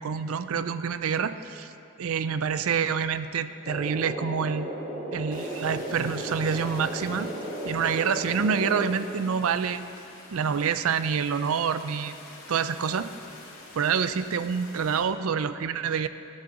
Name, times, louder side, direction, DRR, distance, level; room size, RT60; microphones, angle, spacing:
voice 1, 0.0-1.7 2.0-4.7 5.1-7.3 7.6-9.8 10.3-12.2 12.5-13.1 13.7-16.1, right 6 dB, 85° right, 13 dB, 0.4 m, -27 dB
sound 1, 3.6-8.9, equal, 30° right, 1.5 m, -35 dB
sound 2, 5.3-15.0, left 2 dB, 85° left, 2.6 m, -47 dB
12.0 x 10.5 x 3.9 m, 2.7 s
head